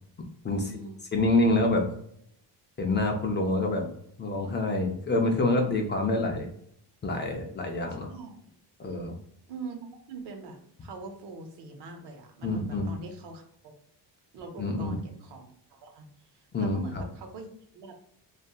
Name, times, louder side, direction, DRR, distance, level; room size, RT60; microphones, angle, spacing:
voice 1, 0.5-1.0 8.1-8.4 9.5-9.8 10.1-13.4 14.3-16.1 16.3-18.0, right 3 dB, 75° right, 4 dB, 0.7 m, -43 dB
voice 2, 1.1-1.9 2.8-3.9 4.2-6.5 7.0-8.1 8.8-9.1 12.4-12.9 14.6-15.0 16.5-17.0, left 2 dB, 30° left, 2 dB, 0.4 m, -26 dB
2.7 x 2.4 x 2.3 m, 0.68 s
cardioid pair, 120°, 42 cm